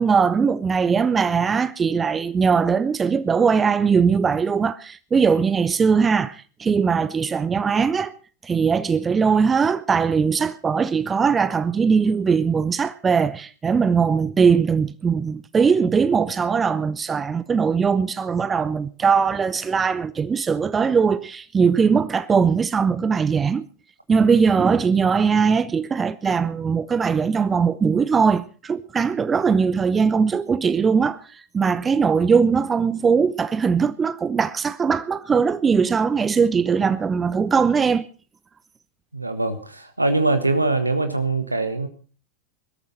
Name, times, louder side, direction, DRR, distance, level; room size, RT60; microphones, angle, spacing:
voice 1, 0.0-8.1 8.4-23.7 24.1-38.1, right 5 dB, 20° right, 0.7 m, -20 dB
voice 2, 39.1-41.9, right 2 dB, 85° right, 1.4 m, -22 dB
21.5 x 13.5 x 4.2 m
figure-of-eight pair, 90°, 0 cm